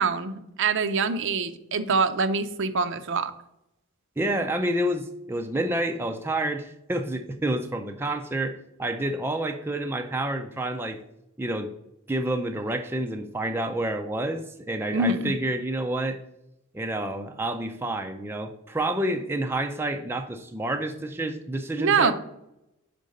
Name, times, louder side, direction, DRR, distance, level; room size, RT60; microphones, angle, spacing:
voice 1, 0.0-3.3 14.9-15.3 21.8-22.1, right 4 dB, 55° right, 10 dB, 0.6 m, -24 dB
voice 2, 4.2-11.0 11.4-11.7 12.1-16.2 16.7-22.1, right 1 dB, 10° right, 5 dB, 0.4 m, -29 dB
5.2 x 4.7 x 6.3 m, 0.85 s
head